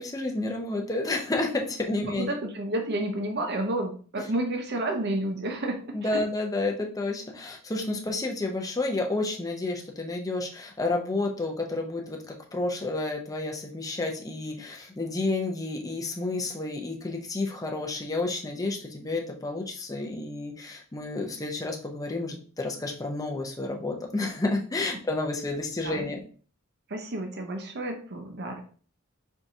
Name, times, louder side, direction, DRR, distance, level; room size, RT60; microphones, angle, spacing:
voice 1, 0.0-2.3 5.9-26.2, left 2 dB, 15° left, 1 dB, 0.6 m, -30 dB
voice 2, 2.0-6.2 25.8-26.1 26.9-28.6, right 1 dB, 50° right, 4 dB, 0.8 m, -31 dB
4.6 x 3.8 x 2.7 m, 0.42 s
head